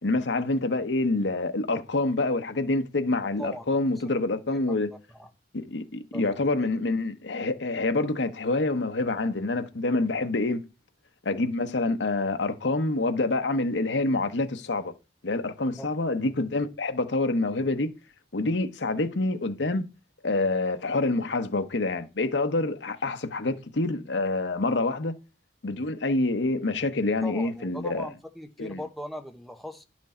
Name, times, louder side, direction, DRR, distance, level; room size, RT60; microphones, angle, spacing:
voice 1, 0.0-4.9 5.5-10.6 11.2-14.9 15.2-17.9 18.3-19.9 20.2-25.1 25.6-28.1 28.6-28.8, left 2 dB, 90° left, 0.9 m, -27 dB
voice 2, 3.4-3.8 4.5-4.6 5.1-5.3 6.1-6.2 6.5-6.7 15.8-15.9 27.2-29.8, equal, ahead, 1.0 m, -39 dB
11.0 x 6.1 x 4.3 m
head